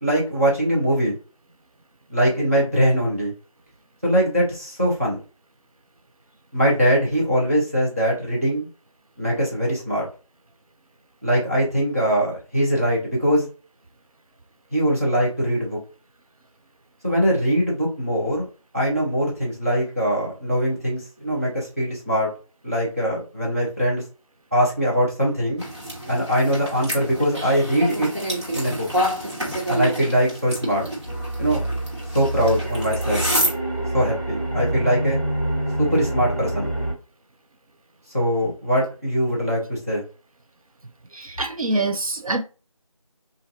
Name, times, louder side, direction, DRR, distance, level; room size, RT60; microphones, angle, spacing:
voice 1, 0.0-1.1 2.1-3.3 4.0-5.2 6.5-8.7 9.2-10.1 11.2-13.5 14.7-15.8 17.0-18.5 18.7-22.3 22.6-24.0 24.5-25.6 26.1-28.1 28.5-28.9 29.7-30.9 31.4-31.6 32.1-33.2 33.9-35.2 35.8-36.7 38.1-40.0, equal, 25° right, 0.9 m, -22 dB
sound 1, 25.6-33.5, equal, 50° right, 1.5 m, -28 dB
sound 2, 31.1-36.9, right 1 dB, 35° left, 0.8 m, -27 dB
voice 2, 41.1-42.4, right 2 dB, 80° right, 0.5 m, -25 dB
3.0 x 2.6 x 2.7 m
figure-of-eight pair, 175°, 18 cm